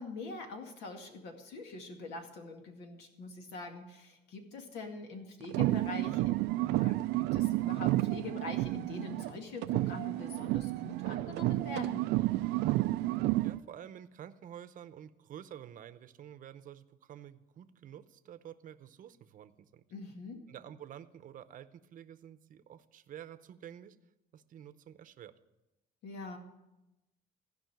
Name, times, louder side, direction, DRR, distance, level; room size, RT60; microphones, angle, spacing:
voice 1, 0.0-6.4 6.7-12.1 19.9-20.4 26.0-26.4, left 3 dB, 85° left, 4 dB, 2.1 m, -44 dB
sound 1, 5.4-9.3 9.6-13.6, right 18 dB, 90° right, 0.4 m, -31 dB
voice 2, 13.4-19.8 20.5-24.0 24.3-25.4, right 10 dB, 50° right, 12 dB, 0.7 m, -50 dB
15.5 x 5.5 x 9.1 m, 0.95 s
cardioid pair, 110°, 17 cm